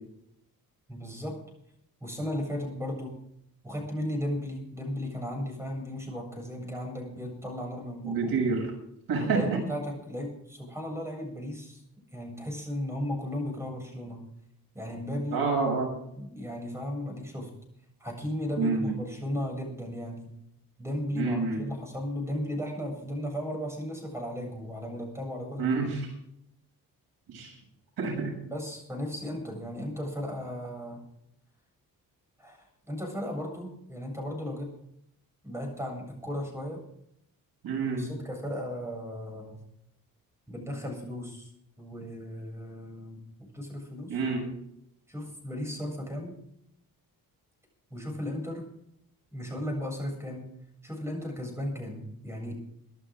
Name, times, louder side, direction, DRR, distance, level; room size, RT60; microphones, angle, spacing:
voice 1, 0.9-1.4 2.0-3.1 3.6-8.3 9.2-11.8 12.1-14.2 14.7-15.4 16.1-17.5 18.0-20.3 20.8-25.7 28.4-31.0 32.4-32.6 32.9-34.7 35.4-36.8 37.9-39.6 40.5-41.5 41.8-43.2 43.5-44.2 45.1-46.3 47.9-48.7 49.3-50.5 50.8-52.6, equal, 5° right, 1 dB, 7.7 m, -35 dB
voice 2, 8.0-8.7 9.1-9.6 15.3-15.9 18.6-18.9 21.1-21.6 25.6-26.0 27.3-27.5 28.0-28.4 37.6-38.1 44.1-44.5, right 4 dB, 75° right, 1 dB, 7.6 m, -28 dB
24.5 x 11.0 x 3.9 m, 0.74 s
cardioid pair, 150°, 37 cm